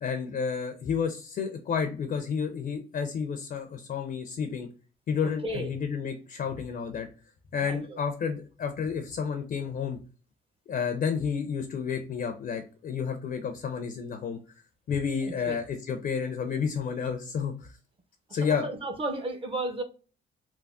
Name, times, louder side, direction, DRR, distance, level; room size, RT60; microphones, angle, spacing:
voice 1, 0.0-4.7 5.1-7.1 7.5-10.0 10.7-14.4 14.9-17.8 18.3-18.7, left 6 dB, 50° left, 0.4 m, -31 dB
voice 2, 5.4-5.7 7.6-8.0 15.2-15.6 18.3-19.8, right 2 dB, 30° right, 0.6 m, -34 dB
3.4 x 2.0 x 2.4 m
cardioid pair, 90°, 20 cm